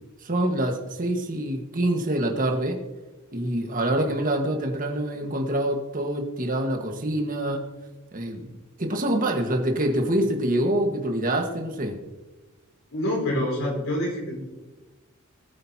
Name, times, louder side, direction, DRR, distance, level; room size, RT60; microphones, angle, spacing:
voice 1, 0.2-2.8 3.3-7.6 8.1-12.0, right 1 dB, 40° right, 3 dB, 1.6 m, -26 dB
voice 2, 12.9-14.4, left 1 dB, 75° left, -1 dB, 4.8 m, -26 dB
20.0 x 9.1 x 2.9 m, 1.1 s
head